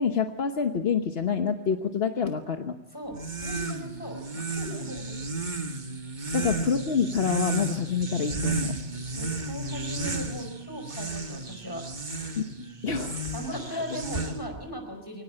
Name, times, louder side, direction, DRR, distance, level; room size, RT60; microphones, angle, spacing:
voice 1, 0.0-2.8 6.3-8.8 12.4-12.5 12.8-13.2 13.7-13.8, left 6 dB, 65° left, 6 dB, 1.3 m, -27 dB
voice 2, 2.9-5.2 6.2-6.3 9.2-11.8 13.3-15.2, equal, 20° left, 5 dB, 4.8 m, -38 dB
sound 1, 3.1-14.6, right 3 dB, 45° right, 1.8 m, -33 dB
23.0 x 19.0 x 8.8 m, 0.85 s
omnidirectional pair, 1.1 m